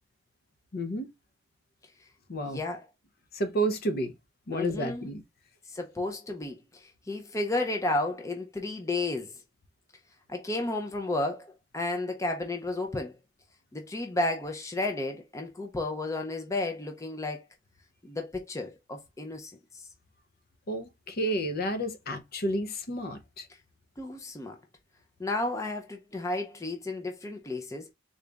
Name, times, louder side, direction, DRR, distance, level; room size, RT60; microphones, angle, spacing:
voice 1, 0.7-1.1 2.3-2.6 3.3-4.1 4.5-5.2 20.7-23.5, right 1 dB, 50° left, 0.7 m, -31 dB
voice 2, 2.4-2.8 4.5-5.1 5.7-9.3 10.3-13.2 13.7-17.4 18.0-19.9 24.0-24.6 25.2-27.9, left 2 dB, 15° left, 0.5 m, -32 dB
3.9 x 2.4 x 3.3 m
head